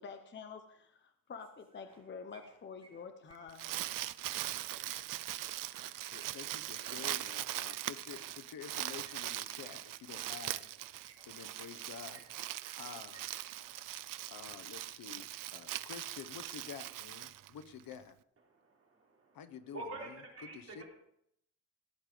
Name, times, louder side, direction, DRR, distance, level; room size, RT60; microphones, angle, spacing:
voice 1, 0.0-3.8, left 5 dB, 35° left, 7 dB, 0.8 m, -48 dB
sound 1, 1.4-2.0 2.3-4.3 5.7-9.1 10.5-10.7 11.0-11.8 12.1-12.8 13.1-13.2 13.5-13.7, right 4 dB, 15° right, 3.4 m, -61 dB
Crumpling crinkling, 3.3-17.9, right 13 dB, 70° right, 0.5 m, -41 dB
voice 2, 6.1-10.7 11.3-12.2 12.8-13.3 14.3-18.2 19.3-20.2 20.5-20.8, left 8 dB, 80° left, 9 dB, 1.0 m, -49 dB
voice 3, 18.5-19.4 19.7-20.1 20.4-20.8, right 2 dB, 45° right, -1 dB, 3.6 m, -46 dB
16.5 x 9.3 x 5.0 m, 0.73 s
wide cardioid pair, 175°, 34 cm